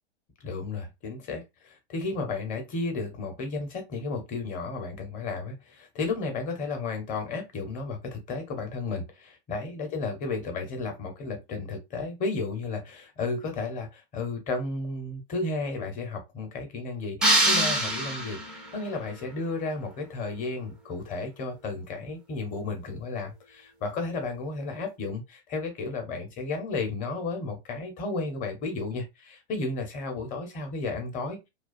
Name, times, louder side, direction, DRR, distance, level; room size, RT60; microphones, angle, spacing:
voice 1, 0.4-31.4, left 3 dB, 25° left, 0.8 m, -33 dB
sound 1, 17.2-18.7, right 1 dB, ahead, 0.3 m, -24 dB
2.3 x 2.3 x 2.4 m
hypercardioid pair, 120°, 31 cm